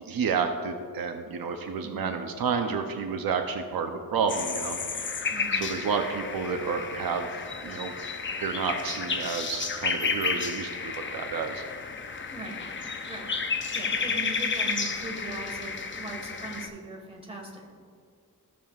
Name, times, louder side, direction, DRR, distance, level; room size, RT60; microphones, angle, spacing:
voice 1, 0.0-4.8 5.5-7.9 8.4-11.6, right 5 dB, 70° right, 5 dB, 0.6 m, -30 dB
sound 1, 4.3-16.7, left 5 dB, 35° left, 0.5 m, -32 dB
voice 2, 5.3-5.7 12.3-12.6 13.1-17.7, right 2 dB, 15° right, 0 dB, 1.5 m, -40 dB
14.5 x 7.0 x 2.4 m, 2.1 s
wide cardioid pair, 150°, 36 cm